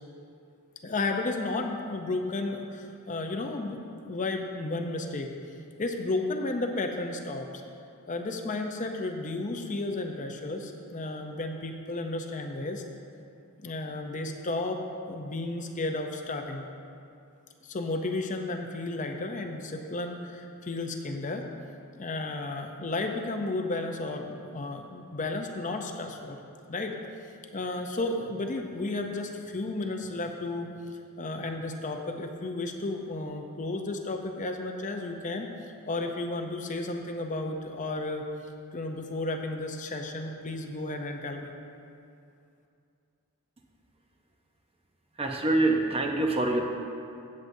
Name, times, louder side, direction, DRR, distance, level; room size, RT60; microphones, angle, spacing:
voice 1, 0.8-5.3 5.8-7.5 8.1-12.8 13.6-14.8 15.1-16.7 17.6-21.4 22.0-26.4 26.7-27.0 27.5-30.7 31.2-35.5 35.9-38.2 38.7-41.5, left 2 dB, 35° left, 4 dB, 0.6 m, -33 dB
voice 2, 45.2-46.6, right 2 dB, 25° right, 1 dB, 0.8 m, -25 dB
16.0 x 7.6 x 2.7 m, 2.5 s
head